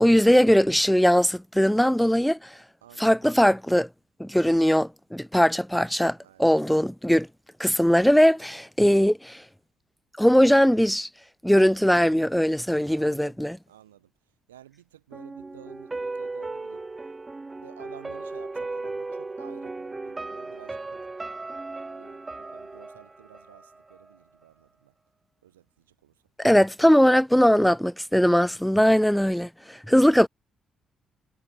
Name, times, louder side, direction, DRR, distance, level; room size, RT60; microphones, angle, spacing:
voice 1, 0.0-2.5 3.0-3.9 4.2-7.3 7.6-9.4 10.2-11.1 11.4-13.6 26.4-30.3, equal, 5° left, 0.4 m, -20 dB
voice 2, 2.8-3.3 6.2-6.6 13.0-16.8 17.6-21.1 21.8-24.9 25.4-26.6 28.9-29.2, right 12 dB, 80° right, 1.2 m, -52 dB
sound 1, 15.1-24.1 24.4-24.5, right 3 dB, 25° right, 0.7 m, -36 dB
figure-of-eight pair, 40°, 0 cm